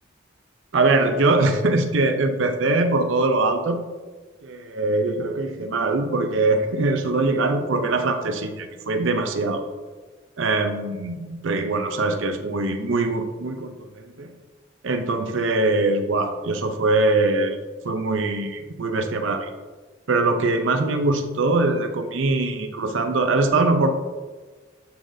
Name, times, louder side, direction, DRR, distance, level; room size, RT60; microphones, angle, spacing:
voice 1, 0.7-3.8 4.4-9.6 10.4-14.3 14.8-17.6 17.8-19.5 20.1-23.9, right 2 dB, 75° right, 8 dB, 0.6 m, -22 dB
11.0 x 3.9 x 2.6 m, 1.4 s
head